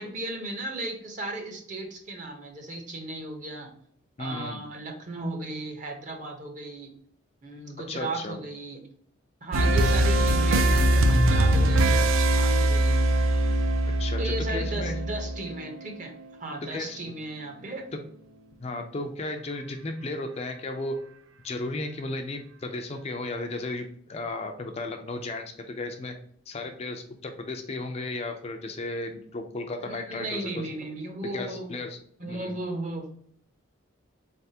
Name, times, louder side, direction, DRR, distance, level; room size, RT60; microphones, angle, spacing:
voice 1, 0.0-3.7 4.2-6.9 7.4-8.8 9.4-13.0 14.2-16.1 16.4-17.9 29.8-31.8 32.2-33.1, right 2 dB, 40° right, 2 dB, 0.8 m, -35 dB
voice 2, 4.2-4.6 7.9-8.4 14.0-15.0 16.6-17.0 18.6-21.1 21.4-26.1 26.5-30.7 31.2-32.0 32.3-32.5, left 2 dB, 30° left, 5 dB, 0.3 m, -34 dB
sound 1, 9.5-16.2, right 1 dB, 80° right, 0.4 m, -22 dB
3.9 x 3.4 x 2.8 m, 0.64 s
head